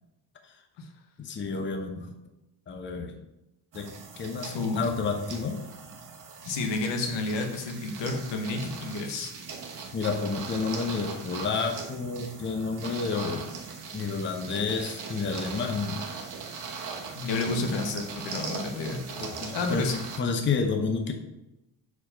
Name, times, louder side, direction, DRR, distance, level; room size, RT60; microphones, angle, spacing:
voice 1, 1.2-2.1 2.7-3.1 3.7-3.9 4.2-5.6 9.9-13.5 13.9-16.1 17.5-17.6 19.2-21.1, left 4 dB, 25° left, 4 dB, 0.8 m, -30 dB
sound 1, 3.7-20.2, right 5 dB, 45° right, 1.2 m, -40 dB
voice 2, 4.5-4.9 6.5-9.3 17.1-19.0 19.5-20.0, left 3 dB, 80° left, 4 dB, 1.2 m, -30 dB
4.7 x 4.4 x 5.6 m, 0.93 s
cardioid pair, 105°, 43 cm